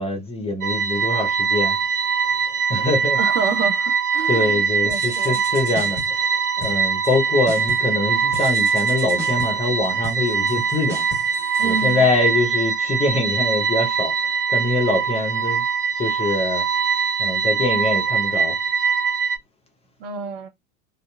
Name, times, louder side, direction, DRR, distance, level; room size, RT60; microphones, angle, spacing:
voice 1, 0.0-1.8 2.4-3.2 4.3-11.0 11.6-15.6 16.0-16.6 17.2-18.6, left 2 dB, 15° left, 0.7 m, -24 dB
sound 1, 0.6-19.4, right 6 dB, 80° right, 0.7 m, -22 dB
voice 2, 3.1-5.4 11.6-12.1 20.0-20.5, right 5 dB, 30° right, 0.5 m, -29 dB
sound 2, 4.9-6.3 6.6-7.2 7.5-8.0 8.3-12.3, left 2 dB, 5° right, 1.3 m, -37 dB
2.7 x 2.3 x 2.2 m
figure-of-eight pair, 95°, 45 cm